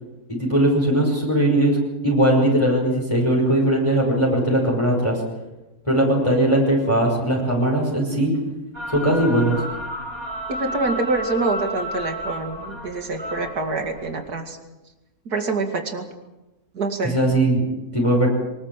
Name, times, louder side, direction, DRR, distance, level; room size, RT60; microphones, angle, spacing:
voice 1, 0.3-1.8 2.0-5.2 5.8-8.4 8.9-9.6 17.0-18.3, right 1 dB, 20° left, -2 dB, 5.8 m, -19 dB
sound 1, 8.7-14.3, equal, 15° right, 4.0 m, -32 dB
voice 2, 10.5-14.6 15.3-16.0 16.7-17.2, right 3 dB, 85° right, 4 dB, 2.9 m, -26 dB
23.5 x 20.0 x 7.5 m, 1.0 s
omnidirectional pair, 1.6 m